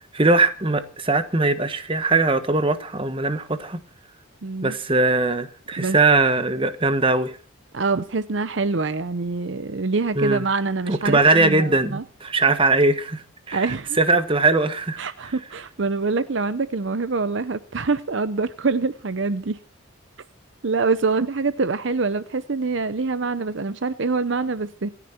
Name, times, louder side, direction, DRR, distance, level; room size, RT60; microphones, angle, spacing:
voice 1, 0.1-3.8 4.6-7.4 10.1-10.4 10.9-13.7 14.0-15.0, right 3 dB, 25° right, 1.3 m, -20 dB
voice 2, 4.4-4.8 5.8-6.0 7.7-12.0 13.5-14.0 15.0-19.6 20.6-24.9, right 4 dB, 60° right, 0.7 m, -25 dB
27.0 x 10.0 x 4.4 m
head